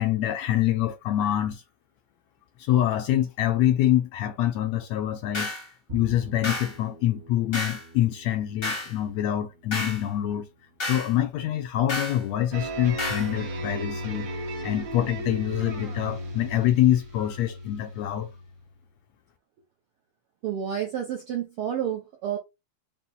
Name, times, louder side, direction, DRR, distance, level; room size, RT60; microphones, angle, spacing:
voice 1, 0.0-1.6 2.6-5.5 5.9-10.5 10.9-18.3, left 12 dB, 80° left, 1.6 m, -25 dB
sound 1, 5.3-5.7 6.4-6.7 7.5-7.8 8.6-8.9 9.7-10.0 10.8-11.1 11.9-12.2 13.0-13.3, left 2 dB, 45° left, 0.7 m, -31 dB
Bowed string instrument, 5.9-12.2, right 1 dB, 45° right, 0.9 m, -47 dB
sound 2, 12.5-18.7, equal, 60° right, 1.2 m, -35 dB
voice 2, 20.4-22.4, right 9 dB, 75° right, 1.3 m, -30 dB
5.7 x 2.1 x 3.8 m
omnidirectional pair, 3.5 m